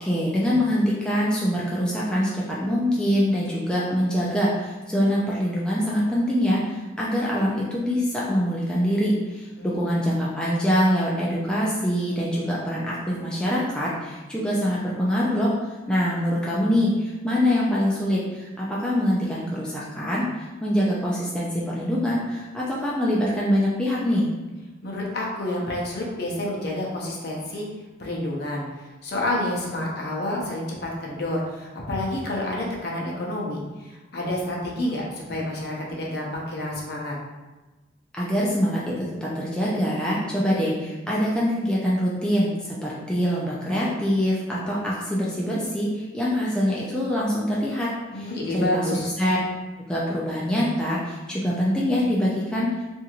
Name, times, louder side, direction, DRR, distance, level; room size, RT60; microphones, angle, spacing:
voice 1, 0.0-15.5 15.9-24.3 38.1-47.9 48.1-48.8 49.2-49.4 49.9-52.8, equal, 5° left, -6 dB, 0.3 m, -24 dB
voice 2, 9.6-10.1 24.8-27.7 28.0-37.2 48.1-49.1, left 1 dB, 55° left, -3 dB, 0.6 m, -29 dB
2.9 x 2.6 x 2.4 m, 1.2 s
head